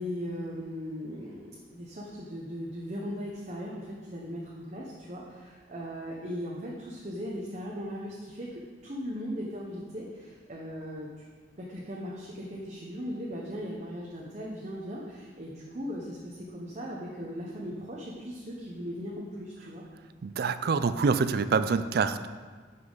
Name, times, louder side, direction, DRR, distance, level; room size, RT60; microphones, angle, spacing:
voice 1, 0.0-11.3 11.6-19.8, equal, 40° right, -3 dB, 1.0 m, -38 dB
voice 2, 20.2-22.3, right 5 dB, 55° right, 12 dB, 0.4 m, -26 dB
11.0 x 5.7 x 4.0 m, 1.5 s
head